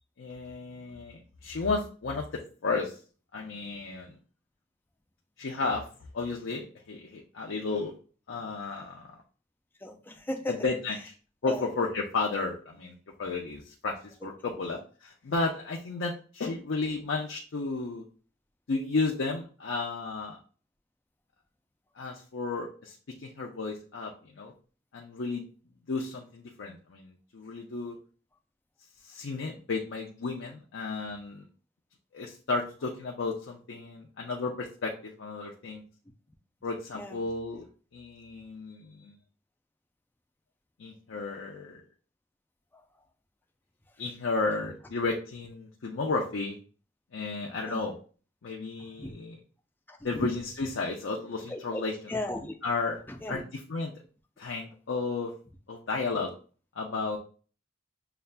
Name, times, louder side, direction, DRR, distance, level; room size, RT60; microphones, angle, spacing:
voice 1, 0.2-3.0 3.3-4.1 5.4-5.9 6.1-7.9 8.3-9.1 10.5-11.1 11.4-18.0 18.7-20.4 22.0-22.9 23.2-24.5 24.9-25.4 25.9-28.0 29.0-31.5 32.1-35.8 36.6-37.7 37.9-39.2 40.8-41.8 44.0-46.6 47.1-48.0 48.4-49.4 50.0-51.9 52.6-53.0 53.3-53.9 54.4-55.3 55.7-56.3 56.8-57.2, left 3 dB, 70° left, -1 dB, 0.5 m, -33 dB
voice 2, 9.8-10.7 11.4-11.7 14.2-14.7 36.9-37.2 42.7-42.8 47.7-47.8 48.8-49.1 49.9-50.3 51.5-51.8 52.1-52.6 53.1-53.4, left 1 dB, 10° left, 5 dB, 0.4 m, -37 dB
6.6 x 2.4 x 2.2 m, 0.40 s
head